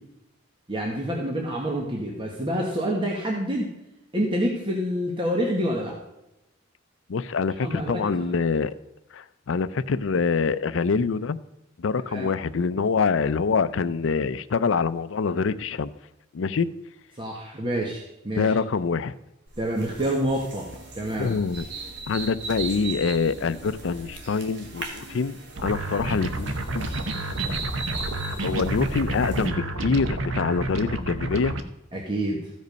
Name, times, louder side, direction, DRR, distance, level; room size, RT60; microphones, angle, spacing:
voice 1, 0.7-3.7 4.1-6.0 7.6-8.3 12.1-12.3 17.2-18.6 19.6-20.7 20.9-21.3 31.9-32.5, equal, 25° right, -1 dB, 1.2 m, -27 dB
voice 2, 7.1-8.7 9.1-11.4 11.8-15.9 16.3-16.7 18.3-19.1 21.2-21.6 22.1-26.9 28.4-31.5, left 5 dB, 70° left, 15 dB, 0.5 m, -25 dB
sound 1, 19.5-29.5, right 4 dB, 60° right, 1.7 m, -38 dB
sound 2, 25.6-31.6, right 2 dB, 85° right, 0.8 m, -30 dB
14.5 x 5.3 x 5.3 m, 0.92 s
head